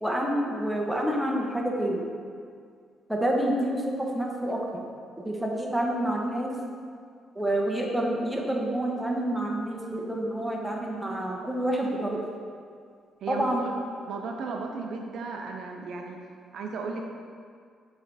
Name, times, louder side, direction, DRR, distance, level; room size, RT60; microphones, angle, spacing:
voice 1, 0.0-2.1 3.1-4.8 5.2-6.5 7.4-12.2 13.3-13.6, right 1 dB, 5° right, -1 dB, 0.9 m, -28 dB
voice 2, 13.2-13.8 14.1-16.2 16.5-17.1, right 4 dB, 70° right, 2 dB, 0.5 m, -35 dB
7.1 x 3.3 x 4.2 m, 2.2 s
cardioid pair, 90°, 0 cm